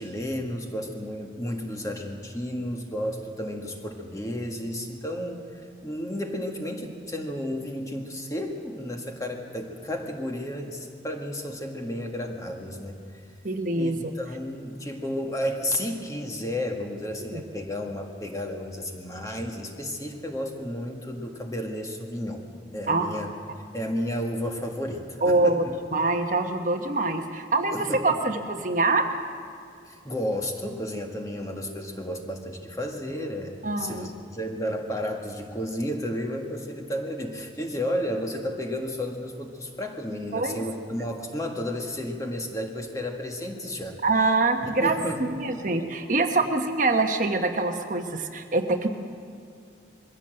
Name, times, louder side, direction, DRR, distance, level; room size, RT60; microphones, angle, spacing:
voice 1, 0.0-13.0 13.7-22.4 22.7-23.3 23.7-25.8 27.7-28.0 29.9-44.0 44.6-45.5, left 1 dB, 20° left, 2 dB, 1.7 m, -32 dB
voice 2, 13.4-14.1 17.3-17.4 22.9-23.1 25.2-25.6 25.9-29.1 33.6-34.1 40.3-40.6 44.0-48.9, right 3 dB, 45° right, 5 dB, 1.2 m, -24 dB
22.0 x 16.0 x 7.8 m, 2.4 s
head